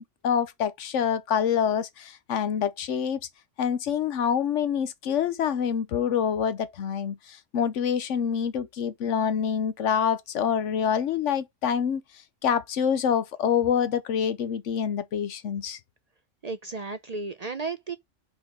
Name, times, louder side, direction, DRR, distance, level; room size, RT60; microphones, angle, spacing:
voice 1, 0.0-3.2 3.6-7.2 7.5-12.0 12.4-15.8, left 8 dB, 85° left, 1.1 m, -26 dB
voice 2, 16.4-18.0, right 4 dB, 45° right, 0.5 m, -33 dB
5.2 x 4.4 x 5.9 m
omnidirectional pair, 1.2 m